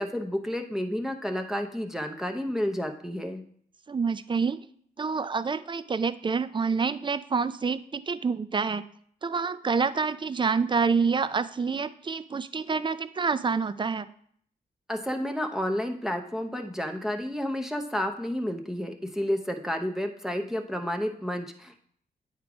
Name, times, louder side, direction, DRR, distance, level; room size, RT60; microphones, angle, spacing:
voice 1, 0.0-3.4 14.9-21.8, equal, 5° right, 4 dB, 0.8 m, -31 dB
voice 2, 3.9-4.7 5.0-8.8 9.2-14.1, right 5 dB, 30° right, 14 dB, 0.4 m, -27 dB
8.8 x 3.7 x 4.8 m, 0.62 s
cardioid pair, 60°, 17 cm